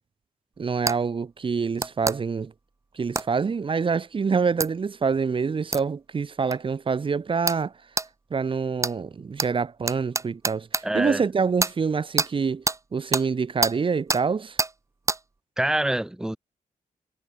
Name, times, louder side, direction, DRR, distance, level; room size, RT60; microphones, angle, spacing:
voice 1, 0.6-2.5 2.9-7.7 8.3-12.6 12.9-14.6, right 5 dB, 40° right, 1.5 m, -26 dB
sound 1, 0.9-1.0 1.8-2.2 3.2-3.3 4.6-4.7 5.7-5.8 6.5-6.6 7.5-7.6 8.0-8.1 8.8-9.0 9.4-9.5 9.9-10.8 11.6-11.7 12.2-12.3 12.7-12.8 13.1-13.3 13.6-13.8 14.1-14.2 14.6-14.7 15.1-15.2, right 3 dB, 20° right, 2.0 m, -26 dB
voice 2, 10.8-11.2 15.6-16.4, right 1 dB, 5° right, 0.8 m, -25 dB
wide cardioid pair, 130°, 14 cm